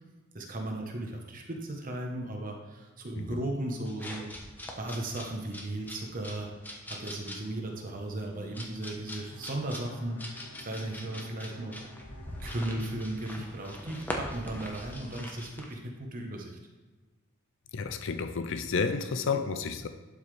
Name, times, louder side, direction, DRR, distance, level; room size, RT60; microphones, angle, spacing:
voice 1, 0.3-4.3 4.8-6.5 6.9-11.8 12.4-16.6, right 1 dB, 40° right, 1 dB, 1.1 m, -36 dB
sound 1, 3.8-15.7, left 1 dB, 10° left, 1.0 m, -43 dB
Bowed string instrument, 9.1-13.9, equal, 90° left, 1.3 m, -50 dB
voice 2, 17.7-19.9, left 5 dB, 60° left, 9 dB, 0.5 m, -31 dB
11.5 x 5.5 x 3.3 m, 1.3 s
head